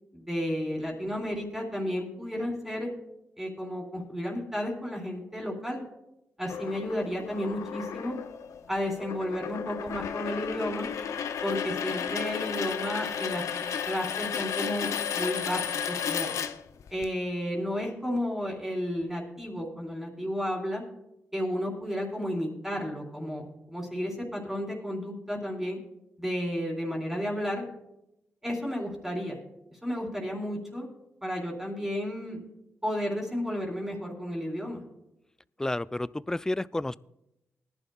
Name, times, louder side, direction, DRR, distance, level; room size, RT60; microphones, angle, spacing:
voice 1, 0.1-2.9 3.4-5.8 6.4-8.2 8.7-10.9 11.4-14.9 15.1-16.3 16.9-20.8 21.3-25.8 26.2-27.6 28.4-29.4 29.7-30.9 31.2-32.4 32.8-34.8, equal, 5° right, -1 dB, 3.6 m, -32 dB
sound 1, 6.5-17.1, left 7 dB, 85° left, 0.5 m, -33 dB
voice 2, 35.6-37.0, left 1 dB, 10° left, 18 dB, 0.3 m, -30 dB
20.5 x 11.0 x 2.3 m, 0.88 s
cardioid pair, 65°, 5 cm